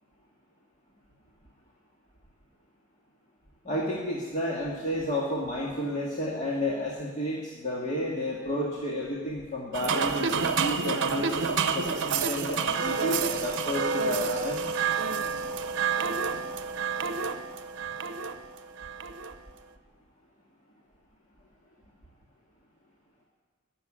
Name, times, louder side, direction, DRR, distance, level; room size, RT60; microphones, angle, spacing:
voice 1, 3.6-14.7, left 1 dB, 35° left, -4 dB, 2.0 m, -31 dB
sound 1, 9.7-19.3, right 5 dB, 60° right, 0.8 m, -29 dB
18.5 x 7.1 x 10.0 m, 1.4 s
head